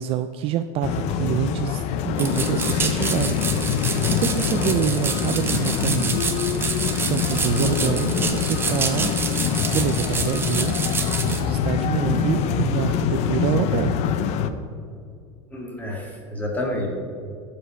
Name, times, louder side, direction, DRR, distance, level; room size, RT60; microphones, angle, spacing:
voice 1, 0.0-3.4 4.1-6.4 7.0-9.1 9.7-10.8 11.2-14.0, right 11 dB, 40° right, 9 dB, 0.4 m, -26 dB
sound 1, 0.8-14.5, left 8 dB, 45° left, 0.6 m, -24 dB
sound 2, 2.2-11.4, right 4 dB, 15° right, 0.8 m, -28 dB
voice 2, 15.5-16.9, left 1 dB, 10° left, -1 dB, 2.0 m, -29 dB
14.5 x 5.1 x 5.7 m, 2.4 s
supercardioid pair, 135°, 15 cm